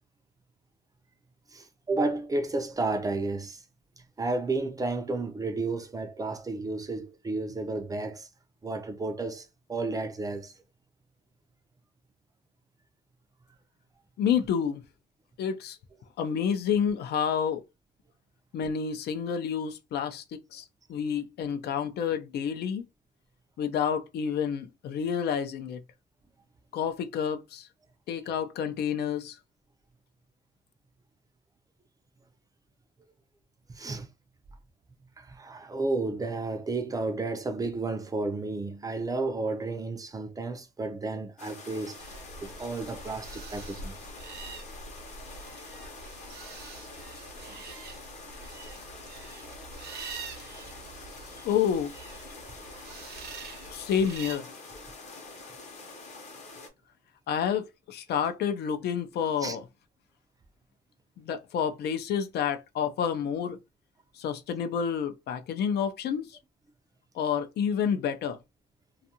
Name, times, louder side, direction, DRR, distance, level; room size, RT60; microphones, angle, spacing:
voice 1, 1.5-3.6 4.2-8.3 8.6-10.5 33.7-34.1 35.2-43.9 47.5-47.6 51.4-51.5 59.4-59.6, right 3 dB, 20° right, 0.4 m, -32 dB
voice 2, 14.2-14.8 15.4-15.8 16.2-17.6 18.5-20.2 20.5-20.6 20.9-22.8 23.6-25.8 26.7-27.7 28.1-29.4 51.4-51.9 53.7-54.5 57.3-59.6 61.2-63.6 64.2-66.3 67.2-68.4, left 7 dB, 70° left, 0.5 m, -29 dB
sound 1, 41.4-56.7, left 3 dB, 40° left, 0.8 m, -46 dB
sound 2, 42.0-54.4, right 4 dB, 65° right, 0.8 m, -45 dB
2.6 x 2.4 x 2.7 m
cardioid pair, 135°, 18 cm